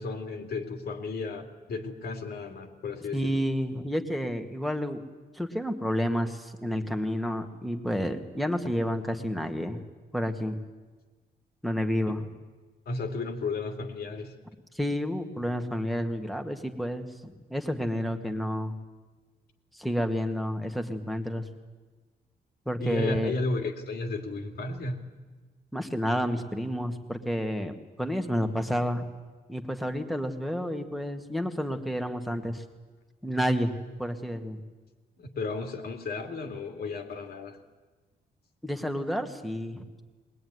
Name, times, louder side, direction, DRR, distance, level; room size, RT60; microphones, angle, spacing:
voice 1, 0.0-3.4 12.9-14.3 22.8-25.1 35.2-37.6, left 3 dB, 70° left, 4 dB, 2.8 m, -33 dB
voice 2, 3.1-5.0 5.3-9.8 10.1-10.6 11.6-12.3 14.7-18.7 19.7-21.5 22.7-23.3 25.7-29.1 29.5-32.6 33.2-33.7 34.0-34.6 38.6-40.0, equal, ahead, 5 dB, 1.9 m, -30 dB
21.5 x 21.0 x 9.6 m, 1.3 s
cardioid pair, 130°, 17 cm